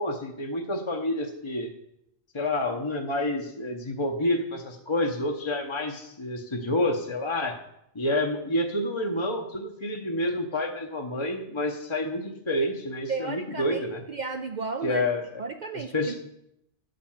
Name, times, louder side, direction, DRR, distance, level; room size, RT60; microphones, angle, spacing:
voice 1, 0.0-1.7 2.3-7.6 7.9-14.0 14.8-15.4 15.7-16.1, left 1 dB, 25° left, 2 dB, 0.8 m, -28 dB
voice 2, 13.1-15.0 15.4-16.1, right 4 dB, 50° right, 5 dB, 0.6 m, -33 dB
10.0 x 5.1 x 7.2 m, 0.79 s
omnidirectional pair, 1.3 m